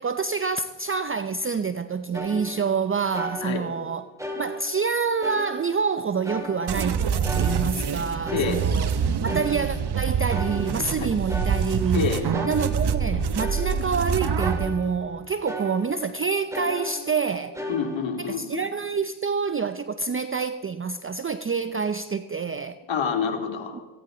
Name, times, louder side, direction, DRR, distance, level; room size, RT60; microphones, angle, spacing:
voice 1, 0.0-4.0 4.4-7.1 7.3-8.9 9.2-12.1 12.5-17.6 18.2-22.8, right 5 dB, 25° right, 0.6 m, -27 dB
sound 1, 2.1-2.8 3.1-3.9 4.2-5.9 6.2-7.0 7.2-10.0 10.3-12.0 12.3-15.2 15.4-16.1 16.5-18.1, equal, 5° right, 3.8 m, -36 dB
sound 2, 6.7-14.7, right 6 dB, 50° right, 1.1 m, -26 dB
voice 2, 11.9-12.3 17.7-18.6 22.9-23.8, left 6 dB, 65° left, 2.8 m, -27 dB
18.0 x 16.0 x 3.9 m
supercardioid pair, 60°, 49 cm